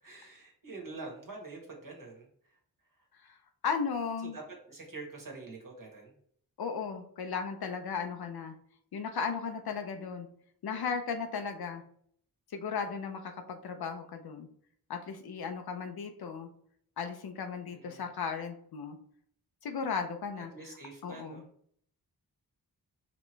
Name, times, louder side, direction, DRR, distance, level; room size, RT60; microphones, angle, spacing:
voice 1, 0.0-2.6 2.9-3.1 4.3-6.2 17.7-18.0 20.4-21.5, right 3 dB, 55° right, -1 dB, 1.6 m, -46 dB
voice 2, 3.6-4.4 6.6-8.5 8.9-10.3 10.6-11.8 12.5-14.5 14.9-16.5 17.0-19.0 19.6-20.5 21.0-21.4, left 5 dB, 70° left, 5 dB, 0.6 m, -36 dB
5.1 x 2.9 x 3.2 m, 0.63 s
wide cardioid pair, 90°, 38 cm